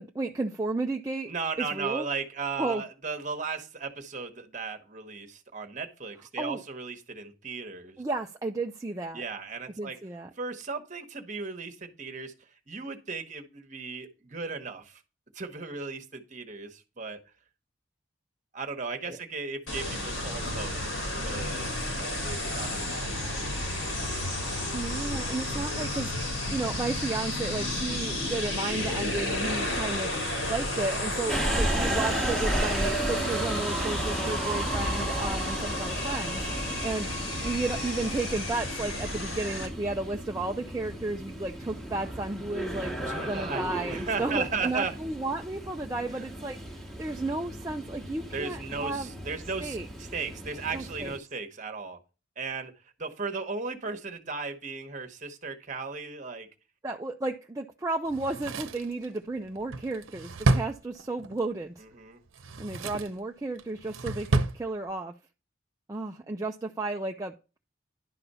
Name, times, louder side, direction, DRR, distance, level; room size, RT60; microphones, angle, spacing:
voice 1, 0.0-1.3 1.6-2.1 2.6-2.8 6.4-6.6 8.0-9.2 9.8-10.3 19.1-19.2 24.7-26.1 26.5-30.1 30.5-37.1 37.4-43.0 43.3-46.6 47.0-49.1 49.6-49.9 50.7-51.1 56.8-61.8 62.6-65.1 65.9-67.3, right 2 dB, 15° right, 1 dB, 0.4 m, -33 dB
voice 2, 1.3-8.0 9.1-10.0 10.4-12.3 12.7-15.0 15.3-17.2 18.5-20.7 21.1-23.1 23.4-24.3 43.0-44.9 46.1-46.2 48.3-52.0 52.4-52.7 53.0-56.5 61.9-62.2, right 4 dB, 35° right, 6 dB, 1.1 m, -36 dB
sound 1, 19.7-39.7, left 1 dB, 75° left, 4.1 m, -32 dB
Subway metro underground, 31.3-51.2, right 1 dB, ahead, 1.1 m, -34 dB
Drawer open or close, 58.1-61.4 62.3-63.2 63.6-64.6 64.9-65.0, right 2 dB, 80° right, 0.8 m, -30 dB
11.0 x 4.2 x 5.4 m, 0.32 s
head